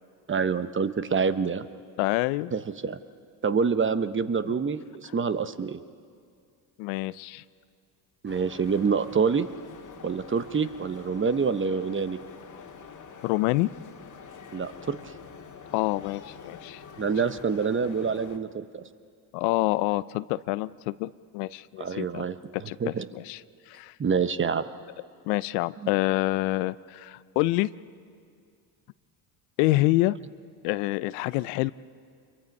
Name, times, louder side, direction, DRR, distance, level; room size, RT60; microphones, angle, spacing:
voice 1, 0.3-1.7 2.5-3.0 3.4-5.8 8.2-9.5 10.0-12.2 14.5-15.0 17.0-18.8 21.8-23.1 24.0-24.6, right 5 dB, 25° right, 12 dB, 1.0 m, -26 dB
voice 2, 2.0-2.5 4.4-4.5 6.8-7.4 13.2-13.7 15.7-16.8 19.3-22.2 22.7-23.4 23.7-23.9 25.3-27.7 29.6-30.2 30.6-31.7, left 19 dB, 85° left, 17 dB, 0.7 m, -27 dB
sound 1, 8.3-18.4, left 6 dB, 40° left, 2.1 m, -46 dB
26.5 x 23.0 x 5.4 m, 2.3 s
supercardioid pair, 80°, 46 cm